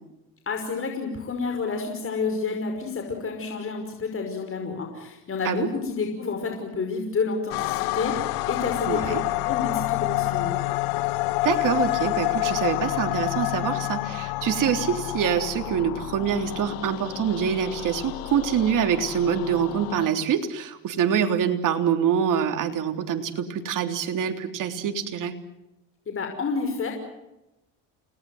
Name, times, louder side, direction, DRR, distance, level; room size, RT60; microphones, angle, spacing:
voice 1, 0.5-10.6 26.1-26.9, left 4 dB, 35° left, 4 dB, 5.6 m, -29 dB
sound 1, 7.5-20.1, left 20 dB, 80° left, 1.0 m, -28 dB
voice 2, 8.9-9.2 11.4-25.4, right 8 dB, 60° right, 6 dB, 3.5 m, -25 dB
29.5 x 19.5 x 7.9 m, 0.94 s
supercardioid pair, 85°, 36 cm